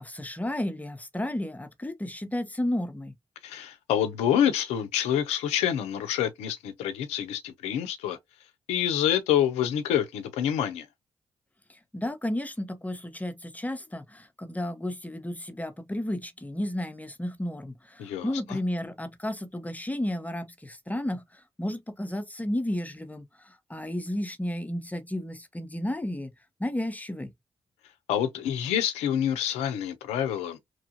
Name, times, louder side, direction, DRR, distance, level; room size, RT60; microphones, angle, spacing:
voice 1, 0.0-3.1 11.7-26.3 26.6-27.3, left 1 dB, 15° left, 0.7 m, -33 dB
voice 2, 3.4-8.2 8.7-10.9 18.0-18.3 28.1-30.6, left 10 dB, 80° left, 0.5 m, -27 dB
3.0 x 2.4 x 2.6 m
hypercardioid pair, 45°, 11 cm